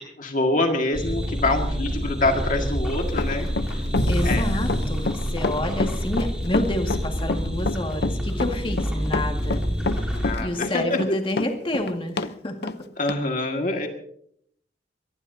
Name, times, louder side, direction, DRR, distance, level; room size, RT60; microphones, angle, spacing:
voice 1, 0.2-3.5 4.2-4.4 10.0-11.0 13.0-13.9, left 2 dB, 50° left, 3 dB, 1.9 m, -25 dB
sound 1, 0.9-10.3, equal, 5° right, 4.9 m, -28 dB
Run, 3.1-12.3 12.6-12.8 13.1-13.2, left 3 dB, 65° left, 0.7 m, -27 dB
sound 2, 4.0-5.8, equal, 90° left, 6.3 m, -26 dB
voice 2, 4.1-10.1 10.4-12.7, left 1 dB, 30° left, 3 dB, 2.0 m, -29 dB
23.5 x 18.5 x 2.8 m, 0.67 s
head